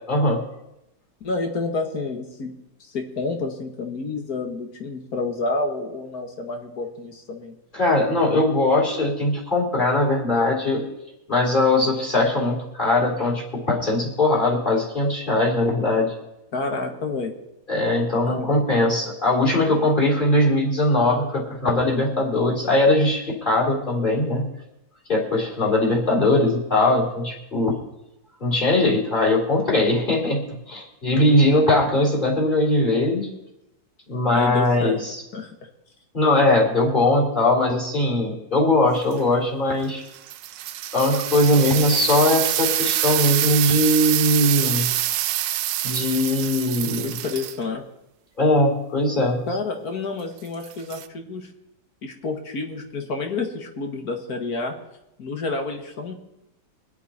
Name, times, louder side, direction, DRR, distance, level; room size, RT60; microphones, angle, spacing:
voice 1, 0.1-0.4 7.7-10.8 11.3-16.1 17.7-24.5 25.1-27.8 28.4-30.4 30.7-33.3 34.1-35.2 36.1-40.0 40.9-44.9 45.8-47.2 48.4-49.4, left 2 dB, 25° left, -1 dB, 4.1 m, -20 dB
voice 2, 1.2-2.5 2.8-7.6 16.5-17.3 18.3-18.5 34.3-35.0 35.3-35.6 47.0-47.8 49.5-51.5 52.0-54.8 55.2-56.1, left 3 dB, 55° left, 4 dB, 2.1 m, -29 dB
sound 1, 38.9-39.1 39.9-47.6 50.6-51.1, right 13 dB, 80° right, 1.3 m, -25 dB
24.0 x 8.2 x 4.4 m, 0.87 s
omnidirectional pair, 2.0 m